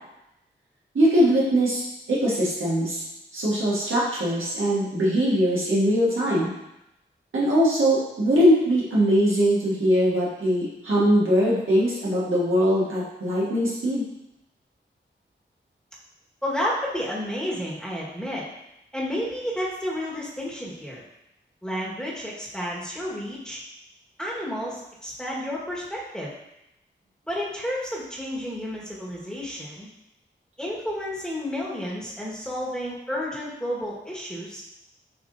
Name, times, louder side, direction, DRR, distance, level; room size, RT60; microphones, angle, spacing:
voice 1, 0.9-1.8 2.1-3.0 3.3-6.5 7.3-14.0, equal, 85° right, -7 dB, 1.5 m, -21 dB
voice 2, 16.4-18.4 18.9-21.0 21.6-23.6 24.2-26.3 27.3-29.9 30.6-34.6, equal, 5° left, -5 dB, 1.5 m, -31 dB
6.6 x 2.9 x 2.6 m, 0.87 s
cardioid pair, 40°, 20 cm